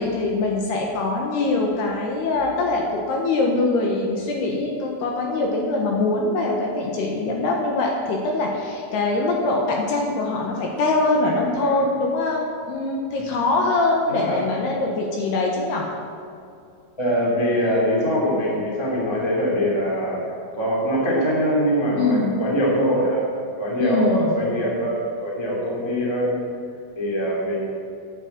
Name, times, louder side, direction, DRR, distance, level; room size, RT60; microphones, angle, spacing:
voice 1, 0.0-15.8 22.0-22.4 23.8-24.4, left 2 dB, 70° left, 0 dB, 3.0 m, -23 dB
voice 2, 14.1-14.5 17.0-20.2 20.5-23.3 23.6-26.4 27.0-27.7, equal, 10° left, -4 dB, 1.7 m, -23 dB
9.1 x 8.9 x 7.9 m, 2.5 s
omnidirectional pair, 5.3 m